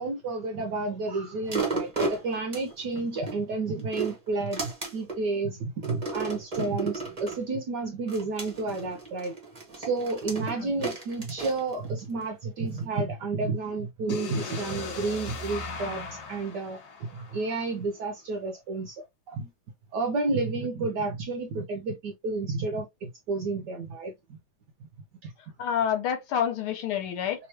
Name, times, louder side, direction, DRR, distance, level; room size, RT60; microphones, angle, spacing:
voice 1, 0.0-9.3 9.8-19.5 19.9-24.1 25.2-25.3, right 3 dB, 70° right, 1.0 m, -31 dB
sound 1, 1.5-3.4 3.8-5.2 5.8-7.4 8.1-12.3 12.8-12.9, right 4 dB, 25° right, 0.9 m, -33 dB
sound 2, 14.1-18.0, left 3 dB, 55° left, 1.2 m, -38 dB
voice 2, 25.6-27.5, left 8 dB, 75° left, 1.7 m, -28 dB
3.4 x 3.0 x 2.8 m
omnidirectional pair, 2.4 m